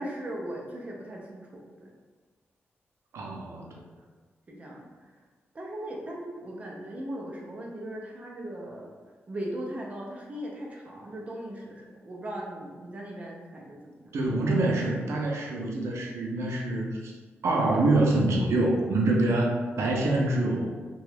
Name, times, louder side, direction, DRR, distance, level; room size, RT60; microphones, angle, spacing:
voice 1, 0.0-1.9 4.5-5.1 5.5-8.9 9.3-14.1, right 1 dB, 30° right, -2 dB, 0.5 m, -38 dB
voice 2, 3.1-3.8 14.1-17.1 17.4-20.7, right 2 dB, 85° right, -1 dB, 0.5 m, -25 dB
2.9 x 2.3 x 3.2 m, 1.4 s
wide cardioid pair, 150°, 5 cm